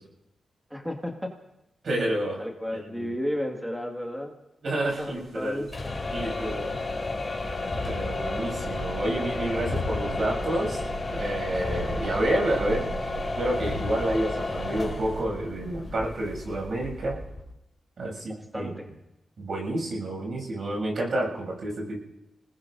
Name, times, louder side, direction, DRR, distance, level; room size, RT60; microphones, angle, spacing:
voice 1, 0.7-1.3 2.4-4.3 4.8-5.7 18.3-18.9, equal, 5° right, 1 dB, 2.0 m, -33 dB
voice 2, 1.8-2.4 2.9-3.1 4.6-5.6 6.1-6.7 7.8-10.8 11.1-12.8 13.4-17.2 18.0-18.7 19.4-22.0, right 1 dB, 65° right, -1 dB, 7.3 m, -29 dB
sound 1, 4.8-15.2, right 3 dB, 90° right, 6.0 m, -41 dB
sound 2, 5.6-17.5, left 3 dB, 35° left, 3.5 m, -32 dB
28.0 x 19.5 x 2.7 m, 0.89 s
cardioid pair, 65°, 0 cm